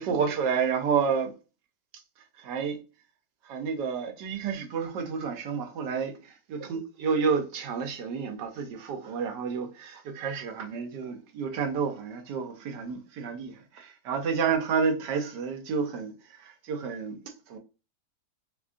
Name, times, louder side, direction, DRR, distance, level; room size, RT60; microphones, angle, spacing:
voice 1, 0.0-1.3 2.4-2.8 3.5-6.1 6.5-16.1 16.4-17.2 17.5-17.6, right 6 dB, 85° right, 1.4 m, -30 dB
3.7 x 3.1 x 2.4 m
omnidirectional pair, 1.8 m